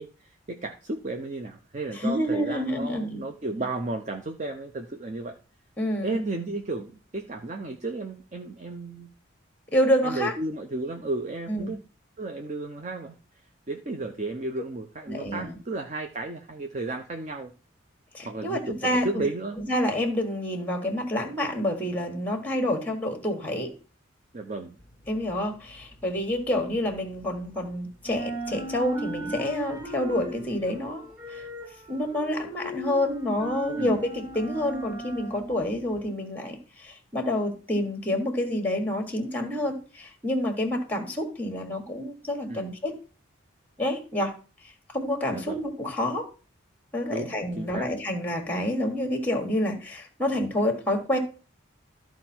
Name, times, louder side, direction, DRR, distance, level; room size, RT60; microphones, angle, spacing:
voice 1, 0.0-5.4 6.0-9.1 10.0-11.8 12.2-13.2 13.7-17.5 18.2-19.6 24.3-24.8 33.7-34.0 42.5-42.7 45.3-45.6 47.1-47.9, right 2 dB, 35° right, 6 dB, 0.6 m, -33 dB
voice 2, 1.9-3.2 5.8-6.2 9.7-10.3 11.5-11.7 15.1-15.6 18.1-19.3 19.7-23.7 25.1-31.5 31.9-42.9 43.8-44.3 44.9-46.3 46.9-51.2, left 1 dB, 10° left, 4 dB, 1.5 m, -28 dB
sound 1, 24.8-27.7 27.9-36.1, right 1 dB, 20° right, 2.0 m, -38 dB
13.0 x 4.6 x 4.4 m, 0.36 s
head